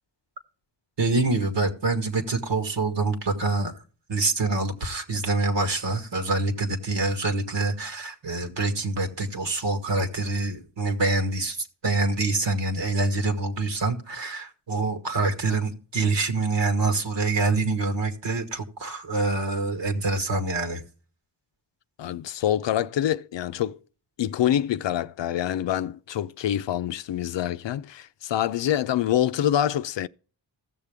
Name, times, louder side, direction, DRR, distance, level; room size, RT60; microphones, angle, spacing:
voice 1, 1.0-3.7 4.1-20.8, right 3 dB, 70° right, 1.8 m, -26 dB
voice 2, 22.0-23.8 24.2-30.1, left 11 dB, 70° left, 0.6 m, -26 dB
15.5 x 6.7 x 3.5 m
cardioid pair, 65°, 45 cm